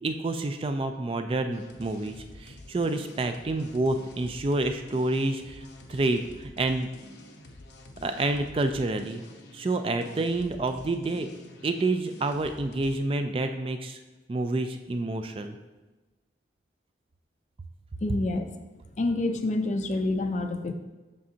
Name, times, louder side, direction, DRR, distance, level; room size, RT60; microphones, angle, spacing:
voice 1, 0.0-2.1 2.4-6.9 8.0-9.2 9.5-11.3 11.6-14.0 14.3-15.6, right 2 dB, 30° right, 7 dB, 0.3 m, -28 dB
sound 1, 1.5-13.0, left 1 dB, 70° left, 0.8 m, -48 dB
voice 2, 18.0-18.5 19.0-20.7, left 2 dB, 40° left, 7 dB, 0.4 m, -27 dB
7.5 x 5.9 x 2.8 m, 1.2 s
head